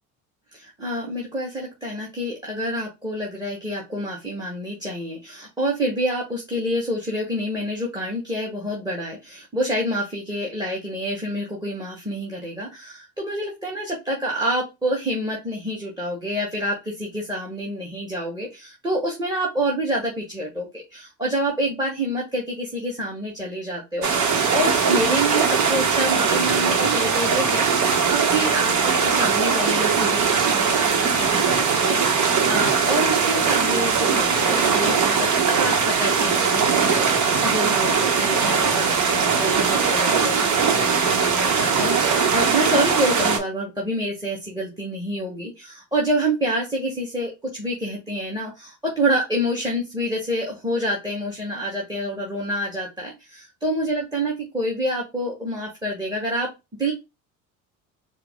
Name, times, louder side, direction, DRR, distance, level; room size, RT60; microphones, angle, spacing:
voice 1, 0.5-28.7 29.0-56.5 56.8-56.9, right 1 dB, 10° right, -2 dB, 1.5 m, -27 dB
sound 1, 24.0-43.4, right 5 dB, 40° right, 1.1 m, -20 dB
4.5 x 2.2 x 3.6 m, 0.24 s
hypercardioid pair, 65°, 43 cm